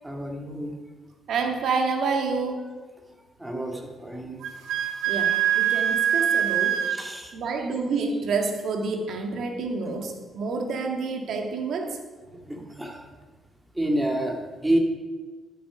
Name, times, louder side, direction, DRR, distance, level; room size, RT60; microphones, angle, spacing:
voice 1, 0.0-0.8 3.4-4.4 6.9-7.3 12.3-13.0 13.7-14.4 14.6-14.8, right 1 dB, 10° right, 1 dB, 2.3 m, -28 dB
voice 2, 1.3-2.7 5.1-6.8 7.3-12.0, right 4 dB, 70° right, 3 dB, 1.9 m, -28 dB
Wind instrument woodwind instrument, 4.4-7.0, right 10 dB, 85° right, 1.3 m, -23 dB
11.5 x 8.6 x 5.1 m, 1.3 s
cardioid pair, 90°, 0 cm